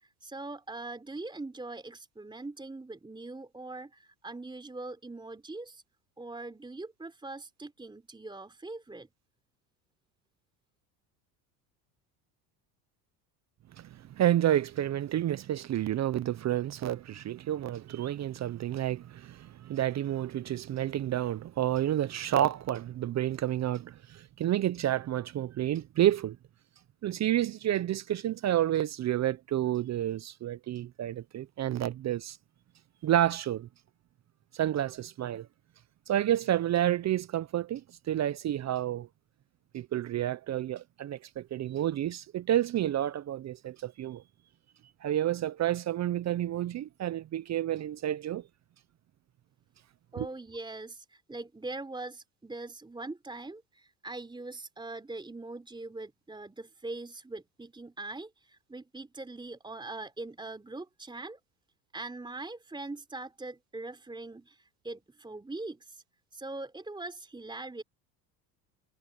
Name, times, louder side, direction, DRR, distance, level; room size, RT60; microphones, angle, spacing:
voice 1, 0.0-5.8 6.2-9.1 50.1-61.4 61.9-66.0 66.3-67.8, right 2 dB, 10° right, 3.6 m, -42 dB
voice 2, 13.8-26.4 27.0-32.4 33.0-33.7 34.5-35.5 36.1-37.8 38.1-39.1 39.7-44.2 45.0-48.4 50.2-50.3, right 12 dB, 35° right, 0.7 m, -30 dB
supercardioid pair, 100°, 46 cm